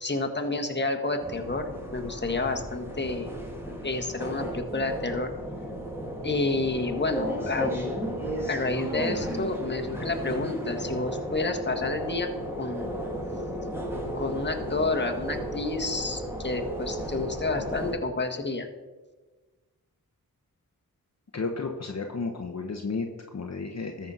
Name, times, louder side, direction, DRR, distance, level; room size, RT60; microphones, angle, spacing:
voice 1, 0.0-3.3 3.8-5.3 6.2-7.9 8.5-12.3 12.6-12.9 14.1-18.7, left 3 dB, 30° left, 4 dB, 1.5 m, -30 dB
sound 1, 1.2-17.9, equal, 5° right, 2.2 m, -34 dB
voice 2, 21.3-24.1, left 4 dB, 45° left, 2 dB, 1.1 m, -33 dB
13.5 x 4.5 x 5.5 m, 1.3 s
cardioid pair, 45°, 36 cm